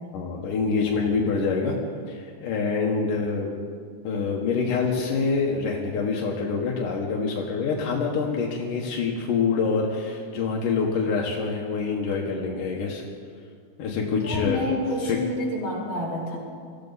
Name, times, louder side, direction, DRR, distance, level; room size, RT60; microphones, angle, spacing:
voice 1, 0.1-1.8 2.1-3.6 4.0-13.0 13.8-14.6 15.1-15.2, left 4 dB, 85° left, -1 dB, 3.0 m, -26 dB
voice 2, 14.2-16.4, left 2 dB, 45° left, -4 dB, 5.4 m, -28 dB
23.5 x 15.0 x 4.1 m, 2.1 s
omnidirectional pair, 3.6 m